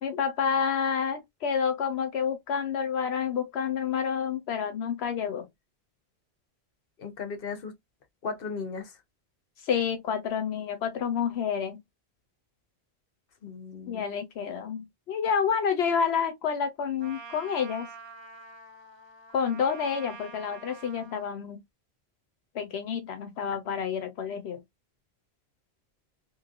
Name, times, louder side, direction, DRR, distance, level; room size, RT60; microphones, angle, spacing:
voice 1, 0.0-5.4 9.7-11.8 13.9-17.9 19.3-21.6 22.5-24.6, left 7 dB, 85° left, 1.0 m, -29 dB
voice 2, 7.0-7.7 8.2-9.0 13.4-14.1 23.5-23.6, left 5 dB, 65° left, 1.1 m, -36 dB
Trumpet, 17.0-21.3, right 5 dB, 30° right, 0.7 m, -46 dB
3.1 x 3.0 x 2.4 m
omnidirectional pair, 1.1 m